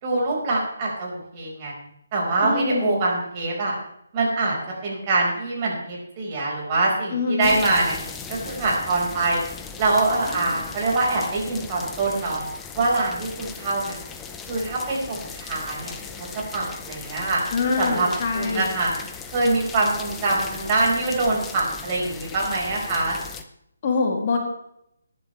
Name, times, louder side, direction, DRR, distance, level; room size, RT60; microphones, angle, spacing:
voice 1, 0.0-1.7 2.1-3.8 4.1-4.6 4.8-8.0 8.3-9.4 9.8-12.4 12.7-14.0 14.5-16.3 16.5-17.4 17.8-18.1 18.3-18.9 19.3-23.2, right 2 dB, 25° right, -3 dB, 5.0 m, -24 dB
voice 2, 2.4-3.0 7.1-7.6 10.4-10.5 17.5-18.6 23.8-24.4, left 4 dB, 35° left, 0 dB, 2.7 m, -24 dB
sound 1, 7.4-23.4, left 6 dB, 10° left, 0.8 m, -38 dB
21.0 x 11.0 x 3.3 m, 0.76 s
figure-of-eight pair, 145°, 0 cm